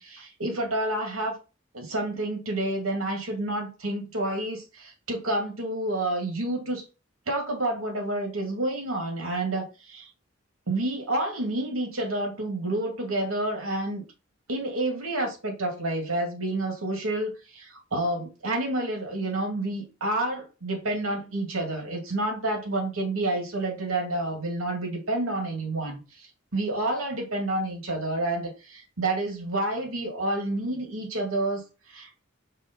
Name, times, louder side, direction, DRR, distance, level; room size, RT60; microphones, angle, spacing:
voice 1, 0.0-1.4 1.7-6.8 7.3-10.1 10.7-14.0 14.5-32.2, right 1 dB, 90° right, 2.3 m, -29 dB
5.6 x 3.2 x 5.2 m
head